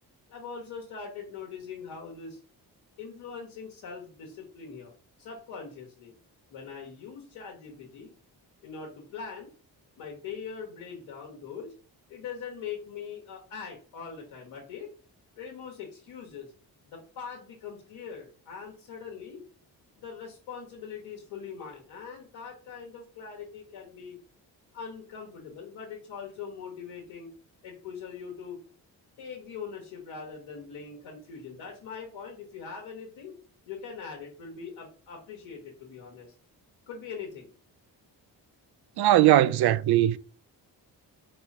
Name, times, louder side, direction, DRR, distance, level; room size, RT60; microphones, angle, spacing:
voice 1, 0.3-2.4 3.0-4.9 5.2-6.1 6.5-8.1 8.6-9.5 10.0-11.7 12.1-14.9 15.3-16.5 16.9-19.4 19.9-24.2 24.7-27.3 27.6-28.6 29.2-33.4 33.6-36.3 36.9-37.5, left 6 dB, 90° left, 1.2 m, -42 dB
voice 2, 39.0-40.2, right 13 dB, 60° right, 0.5 m, -20 dB
4.8 x 2.4 x 4.1 m
supercardioid pair, 50°, 44 cm